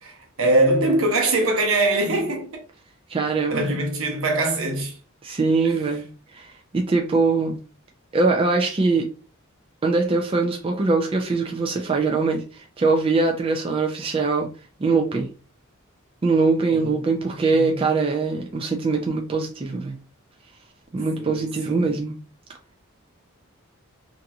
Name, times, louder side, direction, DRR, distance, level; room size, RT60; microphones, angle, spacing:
voice 1, 0.0-2.6 3.5-5.0 16.7-17.1 17.5-17.8 21.2-22.0, right 2 dB, 75° right, 0.8 m, -23 dB
voice 2, 3.1-3.6 5.2-7.6 8.1-9.1 9.8-14.5 14.8-15.3 16.2-20.0 20.9-22.2, right 3 dB, 25° right, 0.4 m, -22 dB
2.8 x 2.6 x 2.3 m
head